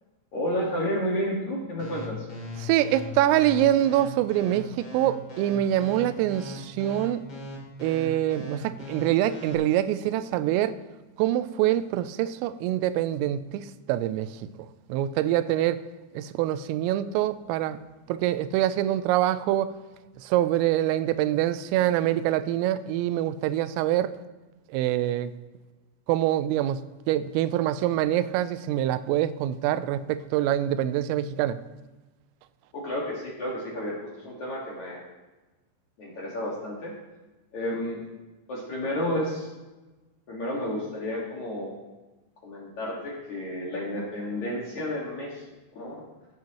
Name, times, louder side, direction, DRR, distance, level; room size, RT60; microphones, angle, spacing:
voice 1, 0.3-2.3 32.7-35.0 36.0-36.9 37.5-38.0 38.5-39.5 40.3-41.7 42.4-45.4 45.8-46.0, equal, 55° left, -4 dB, 2.1 m, -31 dB
sound 1, 1.8-9.5, equal, 35° left, 2.4 m, -40 dB
voice 2, 2.6-7.2 7.8-10.8 11.2-14.5 14.9-15.8 16.1-17.8 18.1-19.7 20.2-24.1 24.7-25.3 26.1-26.8 27.1-31.6, right 13 dB, 90° right, 13 dB, 3.2 m, -25 dB
15.5 x 10.0 x 3.0 m, 1.1 s
omnidirectional pair, 5.8 m